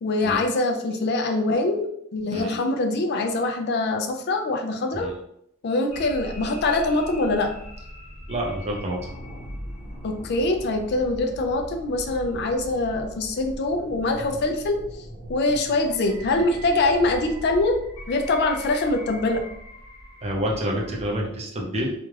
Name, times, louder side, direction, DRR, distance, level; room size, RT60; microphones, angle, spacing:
voice 1, 0.0-5.1 5.6-7.5 10.0-14.8 15.3-17.8 18.1-19.4, left 2 dB, 55° left, 4 dB, 0.4 m, -24 dB
sound 1, 5.9-21.1, equal, 30° left, 0.9 m, -40 dB
voice 2, 8.3-9.0 20.2-21.9, equal, 30° right, -1 dB, 0.5 m, -28 dB
2.4 x 2.3 x 3.1 m, 0.74 s
head